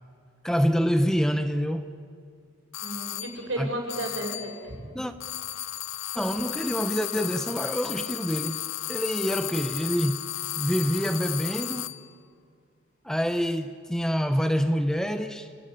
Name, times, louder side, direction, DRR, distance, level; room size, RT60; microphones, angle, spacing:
voice 1, 0.4-1.9 3.6-3.7 4.9-5.1 6.1-8.6 8.9-10.2 10.6-12.0 13.0-15.5, equal, 5° left, 0.7 m, -26 dB
sound 1, 2.7-3.4 3.9-4.6 5.2-12.1, left 14 dB, 65° left, 0.7 m, -34 dB
voice 2, 2.8-4.8, right 1 dB, 70° right, 6.5 m, -33 dB
29.5 x 18.0 x 9.9 m
head